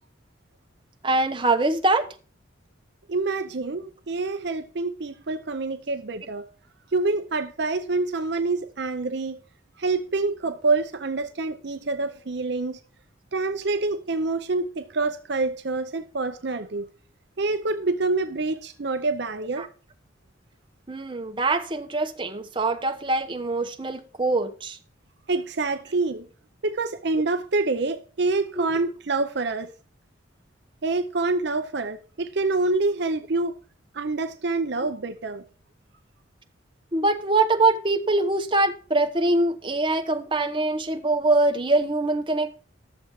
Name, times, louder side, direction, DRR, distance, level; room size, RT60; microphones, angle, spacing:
voice 1, 1.0-2.1 19.6-19.7 20.9-24.8 28.6-28.7 36.9-42.5, right 2 dB, 25° right, 1.0 m, -23 dB
voice 2, 3.1-6.5 6.9-9.4 9.8-12.8 13.3-16.9 17.4-19.7 25.3-26.3 26.6-29.7 30.8-33.6 33.9-35.4, right 3 dB, 60° right, 0.7 m, -26 dB
12.0 x 7.1 x 4.7 m
head